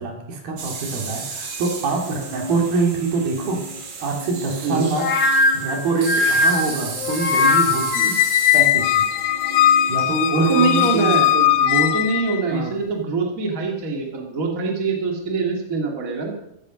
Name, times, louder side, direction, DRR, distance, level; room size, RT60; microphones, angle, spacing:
voice 1, 0.0-3.6 4.0-5.1 5.5-8.3 8.5-9.1 9.9-11.5 12.5-12.7, right 4 dB, 75° right, 1 dB, 4.4 m, -25 dB
sound 1, 0.6-11.3, right 3 dB, 55° right, 3.7 m, -34 dB
sound 2, 5.0-8.1, left 2 dB, 55° left, 1.9 m, -19 dB
Squeak, 7.9-12.4, left 12 dB, 75° left, 2.2 m, -19 dB
voice 2, 10.3-11.3 11.6-16.3, right 4 dB, 25° right, 0 dB, 2.7 m, -23 dB
15.5 x 14.0 x 5.3 m, 0.79 s
omnidirectional pair, 4.3 m